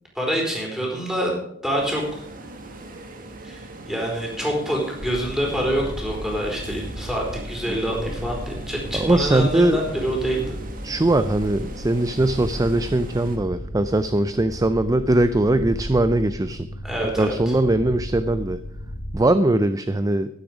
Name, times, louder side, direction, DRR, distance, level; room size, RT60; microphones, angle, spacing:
voice 1, 0.1-1.3 1.6-2.2 3.4-10.6 16.8-17.3, equal, 5° right, -1 dB, 4.4 m, -26 dB
sound 1, 1.8-13.4, right 2 dB, 45° right, 1.8 m, -40 dB
sound 2, 5.0-19.1, equal, 55° left, 2.5 m, -35 dB
voice 2, 8.9-9.8 10.8-16.7 17.0-18.6 19.1-20.3, right 2 dB, 20° right, 12 dB, 0.4 m, -21 dB
12.5 x 11.0 x 5.1 m, 0.74 s
head